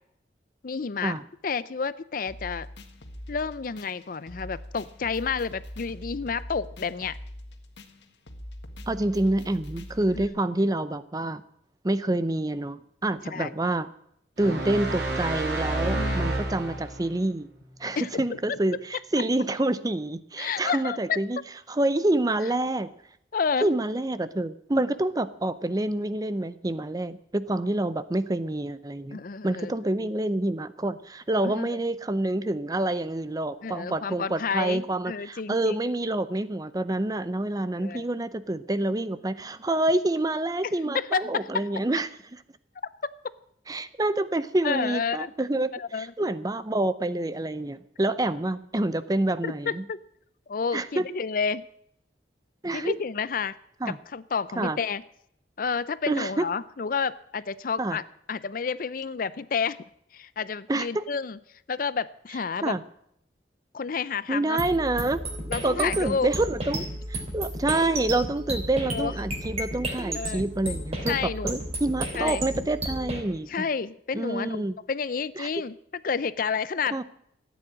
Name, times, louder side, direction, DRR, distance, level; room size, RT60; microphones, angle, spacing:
voice 1, 0.6-1.1 1.4-2.7 3.3-7.2 10.1-10.2 13.3-13.5 15.9-16.3 18.0-18.2 18.5-18.6 20.4-21.2 23.3-23.7 29.1-29.7 30.0-30.1 31.4-31.8 33.6-35.8 37.8-38.1 40.6-41.7 43.0-43.1 44.6-45.3 45.8-46.3 49.4-50.0 50.5-51.6 52.7-53.6 53.9-55.0 55.6-59.8 60.1-61.4 61.7-62.8 63.7-64.6 65.5-66.3 68.9-69.1 70.1-70.4 71.1-71.5 72.1-72.5 73.5-75.7 76.0-77.0, left 5 dB, 50° left, 17 dB, 0.5 m, -30 dB
sound 1, 2.3-10.3, left 1 dB, 80° left, 1.7 m, -42 dB
voice 2, 8.9-11.4 11.8-13.9 14.4-17.5 17.8-21.4 21.7-22.9 23.6-42.4 43.7-49.8 50.7-51.1 52.6-53.0 53.8-54.0 54.6-54.8 56.1-56.5 57.8-58.0 60.7-61.0 62.6-62.8 64.3-65.2 65.6-73.7 74.1-74.8 75.4-75.5 76.9-77.0, right 2 dB, 20° right, 14 dB, 0.6 m, -27 dB
sound 2, 14.4-17.1, right 2 dB, 70° right, 3.2 m, -29 dB
sound 3, 64.6-73.2, right 1 dB, 35° right, 3.2 m, -33 dB
14.5 x 9.3 x 8.6 m, 0.72 s
head